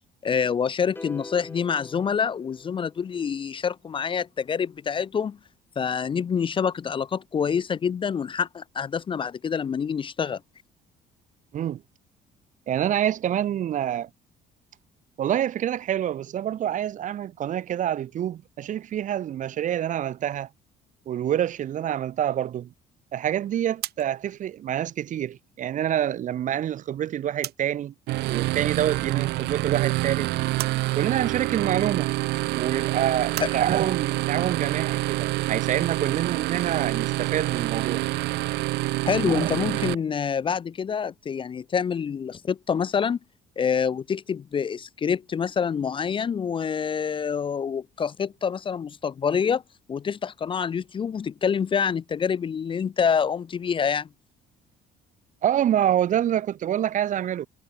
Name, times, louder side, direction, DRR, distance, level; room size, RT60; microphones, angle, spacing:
voice 1, 0.2-5.4 5.8-10.4 33.4-33.5 39.0-43.2 43.6-49.6 49.9-54.1, left 7 dB, 30° left, 0.5 m, -26 dB
sound 1, 1.0-3.3, left 2 dB, 10° left, 3.0 m, -43 dB
voice 2, 12.7-14.1 15.2-20.5 21.1-22.7 23.1-27.9 28.3-30.3 30.9-32.1 32.5-38.0 39.3-39.5 55.4-57.5, right 10 dB, 50° right, 0.7 m, -27 dB
sound 2, 23.8-27.9 28.2-29.2 29.6-33.6, right 14 dB, 70° right, 4.8 m, -41 dB
sound 3, 28.1-39.9, right 20 dB, 90° right, 1.6 m, -27 dB
cardioid pair, 110°, 17 cm